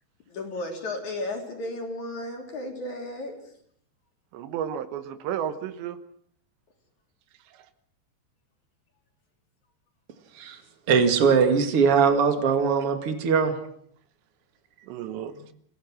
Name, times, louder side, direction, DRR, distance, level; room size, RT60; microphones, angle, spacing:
voice 1, 0.3-3.4 15.3-15.4, left 2 dB, 45° left, 3.9 m, -34 dB
voice 2, 4.3-6.0 14.8-15.4, right 9 dB, 75° right, 3.3 m, -32 dB
voice 3, 10.9-13.5, right 6 dB, 40° right, 2.5 m, -21 dB
28.5 x 16.5 x 6.2 m
omnidirectional pair, 5.2 m